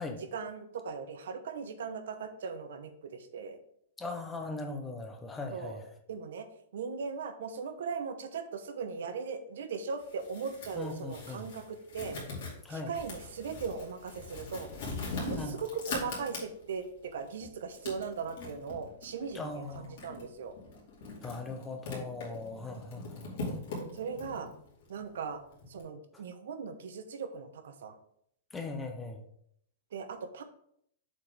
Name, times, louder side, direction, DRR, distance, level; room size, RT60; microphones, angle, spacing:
voice 1, 0.3-3.6 5.5-5.8 6.1-6.5 6.7-12.2 12.7-14.7 15.1-20.5 23.9-24.5 24.9-25.4 25.7-27.9 29.9-30.4, right 5 dB, 65° right, 9 dB, 0.8 m, -38 dB
voice 2, 4.0-5.9 10.8-11.5 12.6-12.9 15.4-15.6 19.3-20.0 21.2-23.6 26.1-26.2 28.5-29.2, left 3 dB, 10° left, 5 dB, 0.5 m, -39 dB
sound 1, 10.0-16.8 17.3-25.8, left 3 dB, 45° left, 2.4 m, -42 dB
7.3 x 4.4 x 3.4 m, 0.69 s
supercardioid pair, 180°, 0 cm